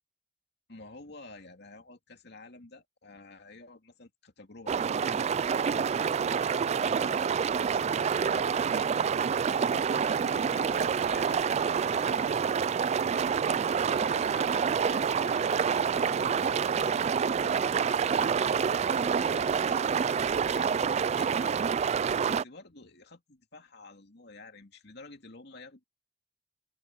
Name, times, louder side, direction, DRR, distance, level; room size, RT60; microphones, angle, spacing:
voice 1, 0.7-7.5 7.8-9.3 9.7-12.7 13.4-16.2 16.5-18.5 18.7-21.7 22.2-25.8, left 3 dB, 60° left, 2.7 m, -50 dB
sound 1, 4.7-22.4, right 6 dB, 35° right, 0.3 m, -27 dB
open air
head